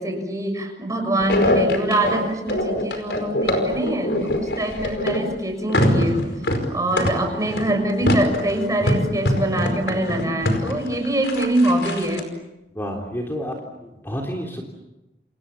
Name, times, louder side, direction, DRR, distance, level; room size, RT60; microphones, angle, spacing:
voice 1, 0.0-6.2 6.7-12.3, right 1 dB, 20° right, 5 dB, 6.3 m, -24 dB
sound 1, 1.2-5.3 5.7-12.2, left 1 dB, 75° left, 5.1 m, -23 dB
voice 2, 12.7-13.6 13.8-14.6, equal, 15° left, 0 dB, 3.4 m, -29 dB
29.5 x 28.0 x 7.1 m, 0.95 s
head